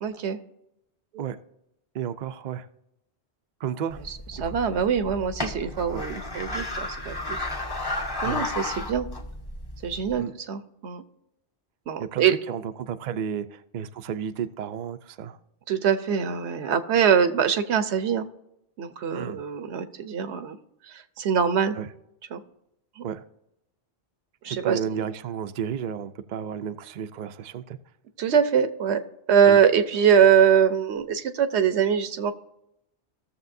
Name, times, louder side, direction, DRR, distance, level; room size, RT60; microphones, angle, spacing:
voice 1, 0.0-0.4 4.4-7.5 7.9-9.1 9.8-11.0 11.9-12.4 15.7-18.3 18.8-20.6 20.9-21.8 22.3-22.4 23.0-23.1 24.4-24.8 28.2-29.0 29.3-32.3, right 7 dB, 80° right, 11 dB, 1.1 m, -23 dB
voice 2, 1.9-2.7 3.6-4.0 4.4-4.6 5.9-6.1 8.2-8.5 10.2-10.3 12.0-15.4 19.1-19.4 21.8-21.9 23.0-23.2 24.5-27.8 29.5-29.6, right 8 dB, 55° right, 9 dB, 0.6 m, -32 dB
sound 1, 3.9-10.2, left 2 dB, 20° left, 1.1 m, -33 dB
16.5 x 6.9 x 2.6 m, 0.82 s
omnidirectional pair, 1.1 m